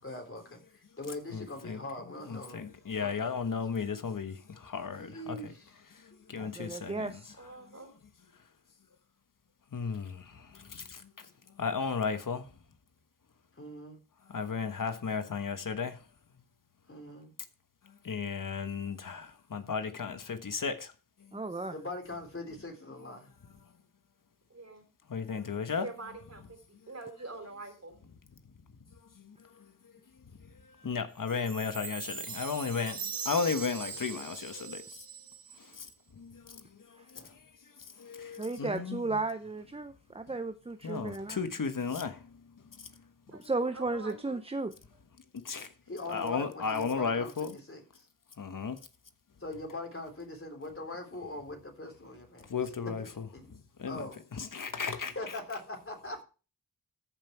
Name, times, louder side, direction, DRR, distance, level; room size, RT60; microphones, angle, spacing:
voice 1, 0.0-2.6 3.0-3.5 4.9-5.8 6.1-6.4 13.5-14.0 16.9-17.3 21.7-23.3 33.9-34.3 37.1-37.4 38.5-38.8 45.9-48.1 49.4-52.9 53.3-53.5 53.9-54.2 55.1-56.2, left 2 dB, 35° left, 3.6 m, -42 dB
voice 2, 1.3-1.8 2.3-4.3 4.7-5.5 6.3-7.1 9.7-10.1 11.6-12.4 14.3-15.9 18.1-19.2 19.5-20.7 25.1-25.9 30.8-33.0 33.3-34.8 38.1-39.2 40.8-42.1 45.5-45.7 46.1-47.5 48.4-48.8 52.5-53.0 53.8-54.1 54.4-55.1, left 5 dB, 60° left, 1.3 m, -34 dB
voice 3, 6.4-7.3 21.3-21.7 38.4-41.4 43.4-44.7, right 3 dB, 15° right, 0.6 m, -34 dB
voice 4, 7.4-7.9 24.5-24.8 25.8-26.6 26.9-28.0 43.3-44.4, right 2 dB, 45° right, 3.4 m, -45 dB
Chime, 31.3-35.7, right 6 dB, 70° right, 1.1 m, -41 dB
14.0 x 5.6 x 4.6 m
wide cardioid pair, 60°, 36 cm